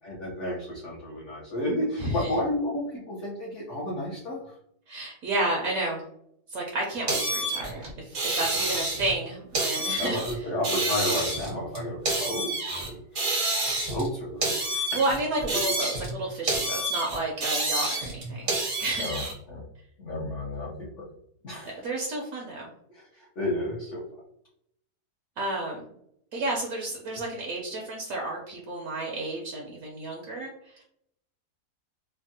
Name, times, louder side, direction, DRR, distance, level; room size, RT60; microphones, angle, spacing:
voice 1, 0.0-4.6 8.6-8.7 10.0-13.3 13.9-15.0 19.0-19.2 19.5-19.6 20.0-21.0 21.4-21.8 22.9-24.0, left 1 dB, 60° left, -5 dB, 0.8 m, -32 dB
voice 2, 2.0-2.3 4.9-6.0 6.5-10.2 14.7-18.5 18.8-19.1 21.8-22.7 25.4-25.8 26.3-30.8, right 2 dB, 70° right, -1 dB, 1.0 m, -31 dB
sound 1, 7.1-9.2 9.5-10.3 10.6-12.9 13.2-14.1 14.4-16.2 16.5-19.3, right 2 dB, 45° right, 0.6 m, -28 dB
3.3 x 2.0 x 2.6 m, 0.73 s
omnidirectional pair, 1.7 m